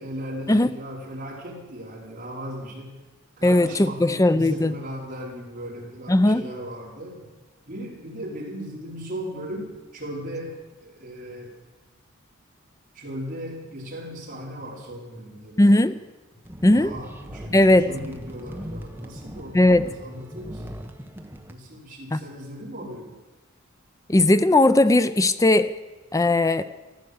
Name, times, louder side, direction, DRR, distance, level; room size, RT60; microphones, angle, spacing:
voice 1, 0.0-3.0 3.4-7.2 7.7-11.5 12.9-15.9 16.6-20.6 21.5-23.2, equal, 40° right, -3 dB, 4.4 m, -37 dB
voice 2, 3.4-4.7 6.1-6.5 15.6-16.0 16.6-16.9 17.5-17.9 19.5-19.9 22.1-22.2 24.1-25.7 26.1-26.7, left 1 dB, 15° left, 13 dB, 0.5 m, -18 dB
sound 1, 16.4-21.5, equal, 10° right, 1.1 m, -39 dB
14.5 x 12.0 x 7.9 m, 1.2 s
head